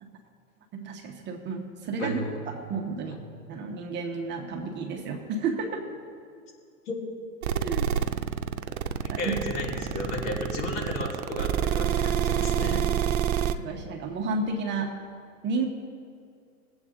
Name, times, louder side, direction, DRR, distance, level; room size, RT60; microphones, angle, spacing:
voice 1, 0.8-2.2 2.5-3.2 3.5-5.8 7.6-7.9 9.1-9.4 13.6-14.9 15.4-15.7, right 4 dB, 25° right, 2 dB, 0.9 m, -31 dB
voice 2, 2.0-2.3 6.9-7.0 9.0-12.9, left 1 dB, 70° left, -3 dB, 3.4 m, -33 dB
sound 1, 7.4-13.5, right 9 dB, 65° right, 0.7 m, -27 dB
18.0 x 8.0 x 3.7 m, 2.3 s
hypercardioid pair, 130°, 46 cm